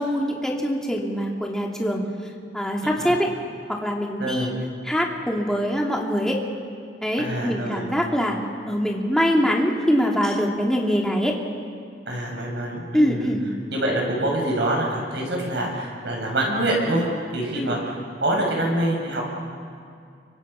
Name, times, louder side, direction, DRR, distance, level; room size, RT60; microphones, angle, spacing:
voice 1, 0.0-2.0 2.5-4.5 4.8-6.4 7.0-8.4 8.7-11.4 12.9-13.4 17.5-17.8, equal, 5° left, -1 dB, 2.6 m, -23 dB
voice 2, 2.8-3.1 4.2-4.5 7.2-7.9 12.1-13.3 13.7-19.3, right 1 dB, 70° right, -1 dB, 6.7 m, -25 dB
29.5 x 25.0 x 5.7 m, 2.3 s
head